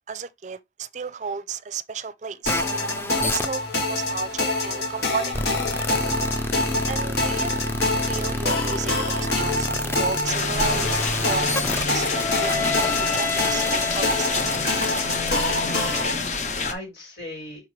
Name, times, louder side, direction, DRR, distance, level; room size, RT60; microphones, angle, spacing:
voice 1, 0.1-2.7 3.2-5.4 6.9-7.5 8.0-14.5 15.2-15.3, right 5 dB, 45° right, 0.5 m, -34 dB
sound 1, 2.5-16.2, left 2 dB, 65° left, 2.0 m, -26 dB
sound 2, 2.5-16.0, left 2 dB, 15° left, 0.6 m, -30 dB
sound 3, 10.3-16.7, left 4 dB, 40° left, 0.9 m, -27 dB
voice 2, 15.7-17.7, left 1 dB, 85° left, 4.6 m, -40 dB
6.0 x 5.3 x 3.2 m
head